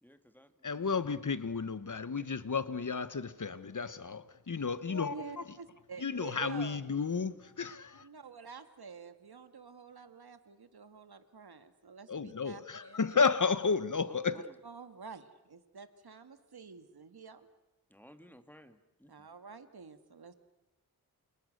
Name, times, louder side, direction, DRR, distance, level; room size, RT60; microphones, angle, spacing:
voice 1, 0.0-0.9 14.1-14.5 17.9-19.3, equal, 5° left, 2.2 m, -57 dB
voice 2, 0.6-5.4 6.0-8.1 12.1-14.5, left 5 dB, 55° left, 1.2 m, -32 dB
voice 3, 5.1-6.8 8.0-13.0 14.3-17.5 19.1-20.3, right 5 dB, 85° right, 2.1 m, -49 dB
29.5 x 28.5 x 6.7 m
wide cardioid pair, 90°, 37 cm